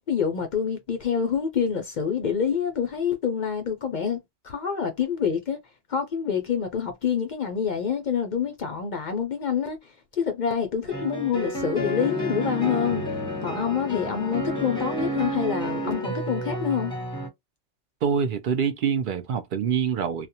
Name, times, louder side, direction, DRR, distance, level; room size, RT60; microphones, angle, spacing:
voice 1, 0.0-4.2 4.4-5.6 5.9-13.1 13.4-16.9, left 7 dB, 60° left, 0.5 m, -27 dB
sound 1, 10.8-17.3, equal, 5° left, 0.8 m, -30 dB
voice 2, 18.0-20.3, right 7 dB, 60° right, 0.5 m, -25 dB
2.4 x 2.1 x 2.7 m
omnidirectional pair, 1.2 m